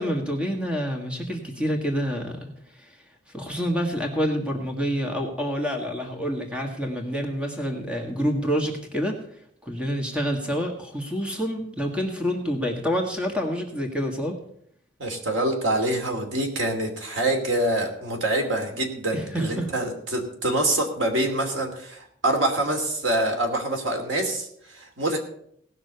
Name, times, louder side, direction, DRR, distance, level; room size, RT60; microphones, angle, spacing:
voice 1, 0.0-2.5 2.8-2.9 3.3-9.2 9.6-14.4 19.1-19.7, equal, 5° right, 2 dB, 1.6 m, -27 dB
voice 2, 15.0-25.2, right 1 dB, 75° right, 3 dB, 2.7 m, -25 dB
17.5 x 6.1 x 6.8 m, 0.68 s
head